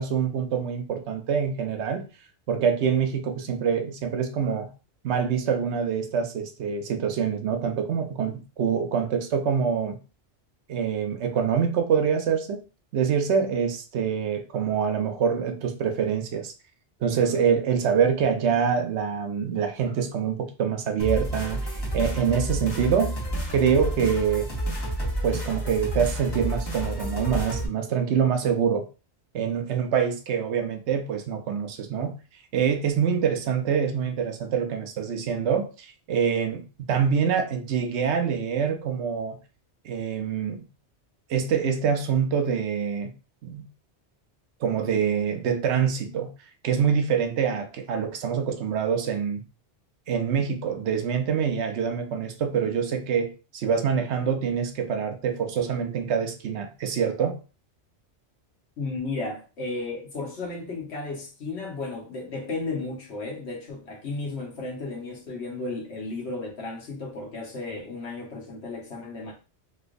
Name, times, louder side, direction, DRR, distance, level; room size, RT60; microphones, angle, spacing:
voice 1, 0.0-2.1 2.5-4.7 5.0-10.0 10.7-12.6 12.9-16.5 17.0-23.1 23.5-24.5 25.2-28.9 29.3-32.2 32.5-39.4 39.8-40.6 41.3-43.1 43.4-43.7 44.6-46.3 46.6-49.4 50.1-57.4, right 7 dB, 75° right, 0.9 m, -25 dB
sound 1, 21.0-27.7, right 1 dB, 20° left, 1.1 m, -30 dB
voice 2, 58.8-69.3, left 3 dB, 65° left, 1.3 m, -34 dB
3.2 x 3.1 x 2.5 m
omnidirectional pair, 1.2 m